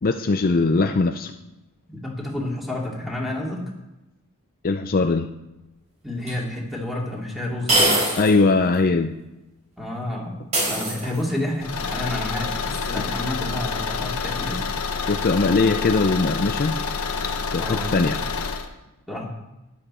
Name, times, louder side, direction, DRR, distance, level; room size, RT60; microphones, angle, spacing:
voice 1, 0.0-1.3 4.6-5.3 8.2-9.2 15.1-16.8 17.5-18.2, left 3 dB, 40° left, 7 dB, 0.5 m, -20 dB
voice 2, 1.9-3.6 6.0-7.9 9.8-10.3 10.7-14.6 17.6-17.9 19.1-19.3, left 1 dB, ahead, -2 dB, 2.6 m, -30 dB
sound 1, 6.3-6.4 7.7-8.4 8.7-8.8 10.5-11.4, right 1 dB, 30° right, 4.5 m, -22 dB
Car / Engine, 11.6-18.7, left 4 dB, 80° left, 1.2 m, -28 dB
13.0 x 10.5 x 4.3 m, 0.98 s
head